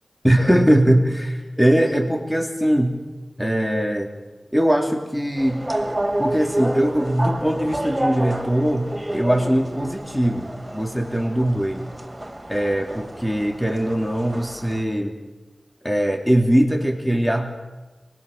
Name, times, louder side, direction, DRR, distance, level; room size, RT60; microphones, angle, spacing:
voice 1, 0.2-3.0 3.4-4.1 4.5-5.6 6.2-11.9 12.5-15.2 15.8-17.5, right 1 dB, 5° left, 3 dB, 3.0 m, -21 dB
sound 1, 5.4-14.8, right 1 dB, 20° right, 3.4 m, -29 dB
29.5 x 21.5 x 6.7 m, 1.2 s
wide cardioid pair, 50°, 0 cm